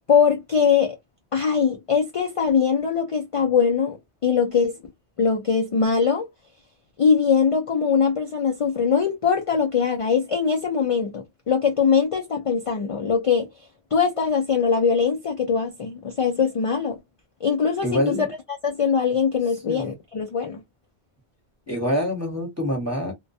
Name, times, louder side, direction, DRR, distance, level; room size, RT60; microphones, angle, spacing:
voice 1, 0.1-1.0 1.3-4.0 4.2-4.8 5.2-6.3 7.0-13.5 13.9-17.0 17.4-18.3 18.6-20.6, left 6 dB, 60° left, 0.3 m, -21 dB
voice 2, 17.8-18.3 19.7-19.9 21.7-23.1, left 1 dB, 15° right, 0.8 m, -25 dB
2.2 x 2.1 x 2.5 m
omnidirectional pair, 1.1 m